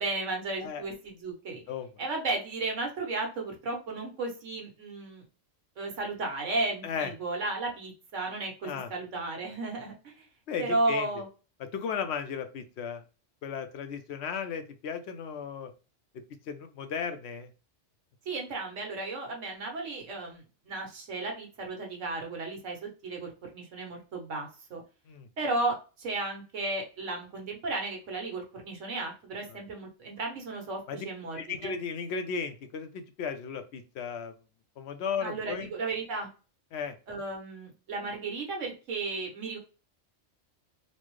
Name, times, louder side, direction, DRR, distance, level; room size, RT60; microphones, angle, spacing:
voice 1, 0.0-1.6 2.0-5.2 5.8-10.3 10.6-11.3 18.2-24.8 25.4-31.7 35.2-36.3 37.1-39.6, right 2 dB, 85° right, 1 dB, 1.4 m, -34 dB
voice 2, 10.5-11.1 11.6-13.0 13.4-15.7 16.5-17.5 25.1-25.3 29.5-29.6 30.9-31.1 31.4-34.3 34.8-35.7 36.7-37.0, left 6 dB, 70° left, 8 dB, 0.8 m, -35 dB
4.2 x 2.1 x 3.0 m, 0.33 s
omnidirectional pair, 1.2 m